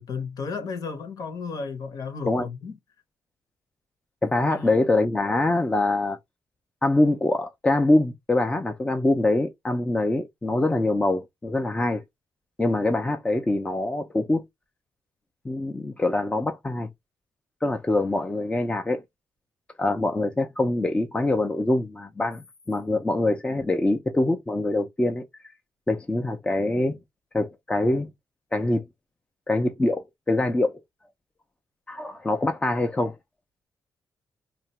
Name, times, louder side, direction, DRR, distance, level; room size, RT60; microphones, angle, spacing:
voice 1, 0.0-2.8 4.5-4.9, left 5 dB, 55° left, 1.0 m, -34 dB
voice 2, 4.2-6.2 6.8-12.0 12.6-14.4 15.4-16.9 17.6-19.0 19.8-25.2 25.9-27.0 27.3-28.1 28.5-28.8 29.5-30.8 31.9-33.2, left 2 dB, 15° left, 0.6 m, -24 dB
2.8 x 2.5 x 4.3 m
cardioid pair, 145°, 8 cm